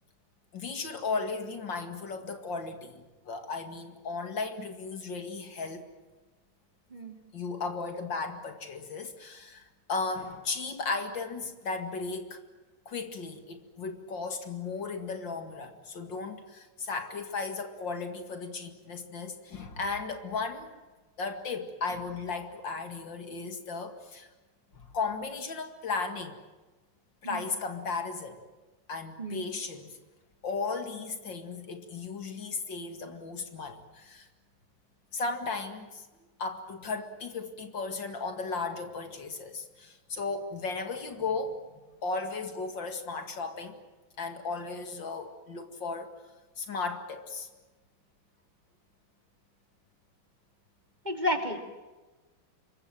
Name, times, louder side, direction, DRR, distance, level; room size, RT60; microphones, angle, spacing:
voice 1, 0.5-5.9 7.3-12.4 12.9-20.7 21.2-24.3 24.9-26.4 27.2-28.4 28.9-30.0 30.4-34.3 35.1-36.1 36.4-41.6 42.0-43.8 44.2-46.1 46.6-47.5, left 4 dB, 65° left, 7 dB, 2.8 m, -35 dB
voice 2, 51.0-51.6, left 1 dB, 20° right, 4 dB, 2.8 m, -31 dB
27.0 x 23.5 x 7.6 m, 1.2 s
omnidirectional pair, 2.2 m